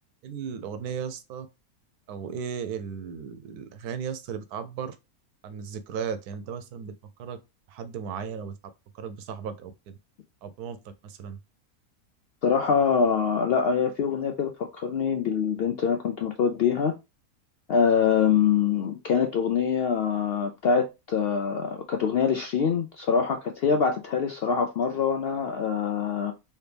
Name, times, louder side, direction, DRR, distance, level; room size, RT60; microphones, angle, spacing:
voice 1, 0.2-1.5 2.1-5.0 5.4-7.4 7.7-8.5 8.9-10.0 10.4-11.4, right 7 dB, 90° right, 1.2 m, -36 dB
voice 2, 12.4-16.9 17.7-26.3, left 6 dB, 75° left, 0.5 m, -24 dB
4.3 x 2.9 x 3.3 m
omnidirectional pair, 1.6 m